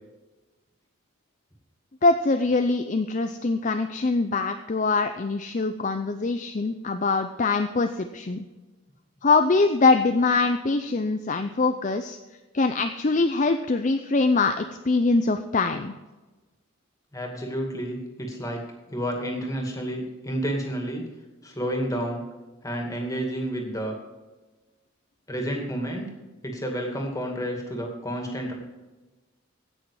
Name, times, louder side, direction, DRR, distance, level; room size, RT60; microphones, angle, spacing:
voice 1, 2.0-8.4 9.2-12.2 12.5-15.9, left 3 dB, 35° left, 7 dB, 0.5 m, -23 dB
voice 2, 17.1-18.6 18.9-21.0 21.4-22.2 22.6-24.0 25.3-26.1 26.4-28.5, equal, 15° left, 1 dB, 2.2 m, -30 dB
16.5 x 6.4 x 4.8 m, 1.2 s
head